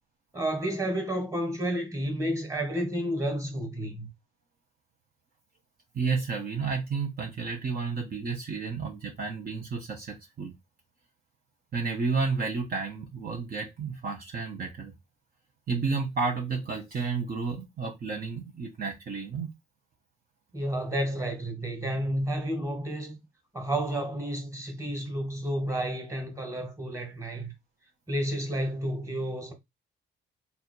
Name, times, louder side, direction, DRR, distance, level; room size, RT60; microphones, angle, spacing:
voice 1, 0.3-4.1 20.5-23.2 23.5-27.5 28.1-29.5, right 1 dB, 15° right, 1.9 m, -31 dB
voice 2, 5.9-10.5 11.7-14.9 15.7-19.5, right 4 dB, 50° right, 1.2 m, -31 dB
3.5 x 2.7 x 4.5 m
cardioid pair, 90°, 20 cm